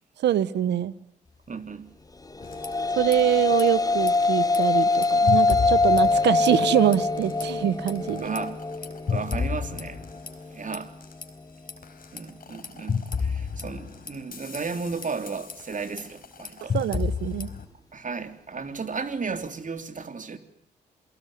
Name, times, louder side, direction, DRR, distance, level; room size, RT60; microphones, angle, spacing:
voice 1, 0.2-0.9 3.0-8.3 16.7-17.5, right 11 dB, 90° right, 1.2 m, -24 dB
voice 2, 1.5-1.9 8.1-8.6 9.1-10.0 10.5-10.9 12.1-16.8 17.9-20.4, right 4 dB, 50° right, 3.6 m, -34 dB
sound 1, 2.3-10.9, left 3 dB, 20° left, 1.2 m, -24 dB
sound 2, 2.4-3.2 3.4-3.6 4.0-6.7 6.9-7.4 7.9-11.3 11.7-17.6, left 5 dB, 55° left, 4.3 m, -32 dB
28.0 x 23.0 x 9.3 m
cardioid pair, 60°, 18 cm